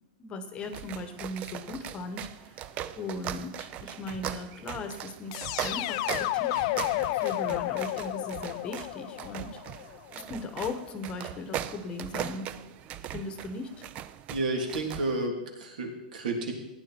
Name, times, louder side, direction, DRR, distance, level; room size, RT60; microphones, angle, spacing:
voice 1, 0.2-2.5 3.0-6.7 7.1-9.9 10.1-12.5 13.1-13.9, left 3 dB, 20° left, 9 dB, 1.1 m, -38 dB
sound 1, 0.6-15.3, right 11 dB, 30° right, 0.5 m, -39 dB
sound 2, 5.3-10.2, left 16 dB, 45° left, 0.5 m, -31 dB
voice 2, 14.3-16.5, right 2 dB, 70° right, 1 dB, 3.2 m, -31 dB
15.5 x 9.7 x 4.5 m, 0.99 s
hypercardioid pair, 145°, 5 cm